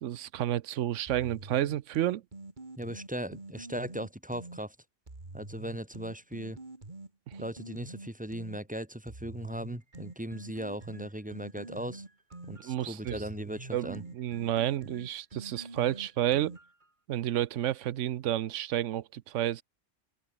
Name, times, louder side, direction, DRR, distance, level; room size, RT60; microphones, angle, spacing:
voice 1, 0.0-2.2 12.5-13.2 13.7-16.6 17.1-19.6, right 12 dB, 85° right, 1.0 m, -30 dB
sound 1, 1.1-4.6 5.1-8.6 9.1-16.9, right 2 dB, 40° right, 3.0 m, -46 dB
voice 2, 2.8-4.7 5.3-6.6 7.4-12.0 12.5-14.0, equal, 5° right, 1.6 m, -38 dB
omnidirectional pair, 1.2 m